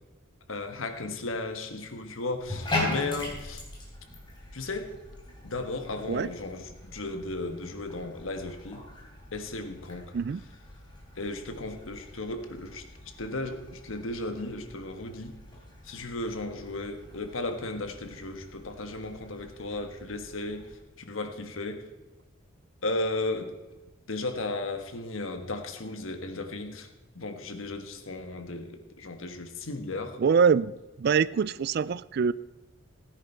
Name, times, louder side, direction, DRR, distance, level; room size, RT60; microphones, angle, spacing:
voice 1, 0.5-3.6 4.5-4.9 5.4-8.8 9.3-10.1 11.2-12.8 13.2-15.4 15.8-20.7 21.0-21.9 22.8-23.5 24.1-26.9 27.1-30.2, left 2 dB, 80° left, 1.4 m, -35 dB
Bathtub (filling or washing), 2.4-20.7, left 2 dB, 25° left, 3.5 m, -40 dB
voice 2, 30.2-30.7 31.0-32.3, right 6 dB, 50° right, 0.3 m, -24 dB
17.0 x 9.8 x 4.5 m
head